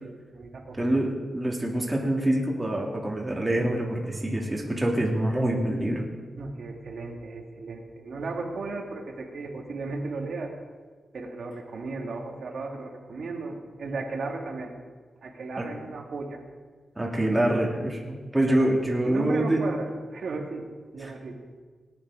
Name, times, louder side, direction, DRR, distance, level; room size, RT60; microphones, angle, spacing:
voice 1, 0.0-0.8 6.4-10.5 11.1-14.7 15.2-16.4 18.4-18.7 19.0-20.7 20.9-21.4, right 3 dB, 70° right, 1 dB, 2.0 m, -35 dB
voice 2, 0.8-1.1 1.3-6.0 15.6-15.7 17.0-19.6 21.0-21.1, right 1 dB, 15° right, -1 dB, 2.3 m, -25 dB
18.5 x 10.0 x 4.9 m, 1.5 s
wide cardioid pair, 120°, 0 cm